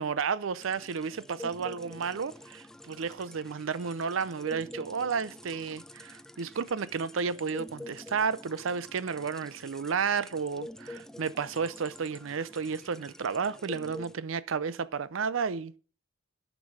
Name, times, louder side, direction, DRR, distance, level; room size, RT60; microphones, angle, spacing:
voice 1, 0.0-15.8, right 5 dB, 70° right, 0.5 m, -32 dB
sound 1, 0.6-14.2, left 1 dB, 5° left, 0.4 m, -47 dB
9.5 x 6.1 x 4.8 m
head